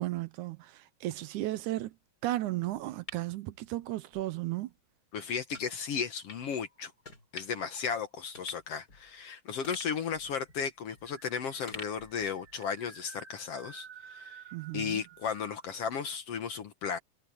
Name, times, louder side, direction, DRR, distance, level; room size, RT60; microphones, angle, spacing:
voice 1, 0.0-1.9 2.2-4.7 14.5-15.0, right 16 dB, 80° right, 2.1 m, -34 dB
sound 1, 2.6-4.2 4.6-4.7 5.5-5.7 6.3-6.4 7.0-7.7 8.0-8.1 8.3-9.2 9.6-11.2 11.7-12.8 13.2-13.3, left 2 dB, 30° left, 4.8 m, -49 dB
voice 2, 5.1-6.9 7.3-14.4 14.7-17.0, left 6 dB, 60° left, 1.8 m, -35 dB
sound 2, 5.5-7.0 7.5-8.2 9.2-9.3 9.5-9.6 9.9-15.7, right 5 dB, 35° right, 2.9 m, -53 dB
omnidirectional pair, 3.7 m